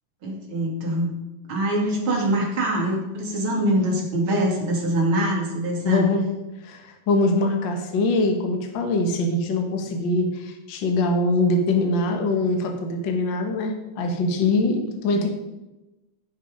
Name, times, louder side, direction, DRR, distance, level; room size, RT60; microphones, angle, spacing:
voice 1, 0.2-1.1 1.5-6.1, right 1 dB, 35° right, -1 dB, 2.8 m, -24 dB
voice 2, 5.8-6.2 6.6-15.3, left 2 dB, 75° left, 3 dB, 1.0 m, -23 dB
15.5 x 6.2 x 5.1 m, 1.0 s
omnidirectional pair, 4.4 m